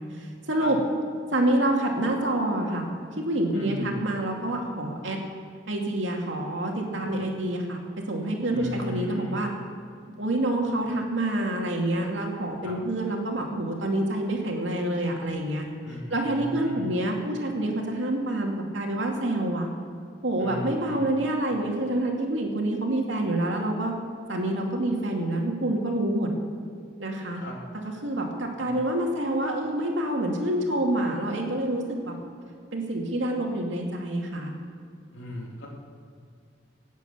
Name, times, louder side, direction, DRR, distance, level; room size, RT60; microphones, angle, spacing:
voice 1, 0.1-0.8 1.3-2.9 3.2-5.2 5.7-9.5 10.2-15.7 16.1-19.7 20.2-23.9 24.3-26.3 27.0-27.4 27.8-32.2 32.7-34.5, right 1 dB, 80° right, 0 dB, 2.5 m, -27 dB
voice 2, 3.5-4.0 8.4-9.4 12.6-12.8 15.8-16.9 20.4-21.1 27.3-27.6 28.6-28.7 35.1-35.7, left 1 dB, 85° left, -2 dB, 3.3 m, -37 dB
18.0 x 8.2 x 7.1 m, 2.4 s
head